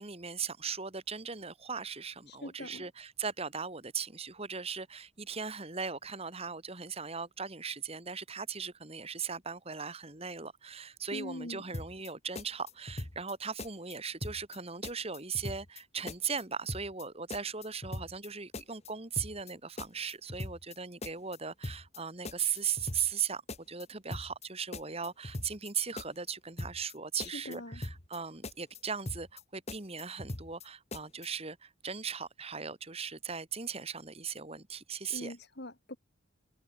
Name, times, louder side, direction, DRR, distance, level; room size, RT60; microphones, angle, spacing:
voice 1, 0.0-23.4 23.7-35.4, right 6 dB, 30° right, 2.0 m, -38 dB
voice 2, 2.3-2.8 11.1-11.6 27.2-27.8 35.1-36.0, left 1 dB, 50° left, 3.2 m, -43 dB
sound 1, 11.7-12.1 12.3-13.3 13.6-13.9 14.2-14.6 14.8-15.8 16.1-16.4 16.7-17.0 17.3-18.3 18.5-18.9 19.2-19.5 19.8-20.7 21.0-21.4 21.6-22.0 22.2-23.2 23.5-23.8 24.1-24.5 24.7-25.7 26.0-26.3 26.6-26.9 27.2-28.2 28.4-28.8 29.1-29.4 29.7-30.6 30.9-31.3, left 1 dB, 30° left, 1.8 m, -41 dB
head